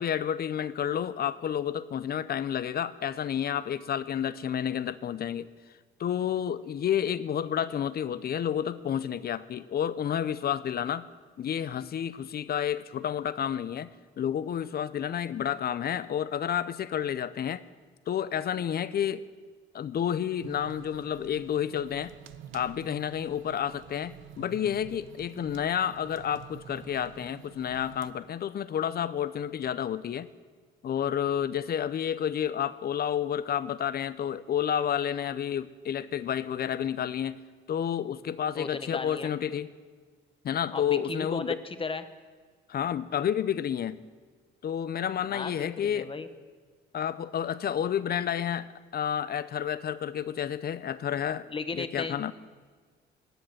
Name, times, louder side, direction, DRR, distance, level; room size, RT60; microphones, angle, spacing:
voice 1, 0.0-5.5 6.0-11.1 11.4-13.9 14.2-17.6 18.1-19.2 19.7-22.1 22.5-30.3 30.8-37.4 37.7-39.7 40.4-41.6 42.7-44.0 44.6-46.1 46.9-52.3, left 9 dB, 50° left, 16 dB, 0.6 m, -30 dB
sound 1, 20.4-28.1, right 11 dB, 80° right, 0.7 m, -49 dB
voice 2, 38.5-39.3 40.7-42.1 45.3-46.3 51.5-52.2, left 4 dB, 25° left, 11 dB, 1.0 m, -35 dB
14.5 x 6.7 x 9.4 m, 1.5 s
cardioid pair, 90°, 20 cm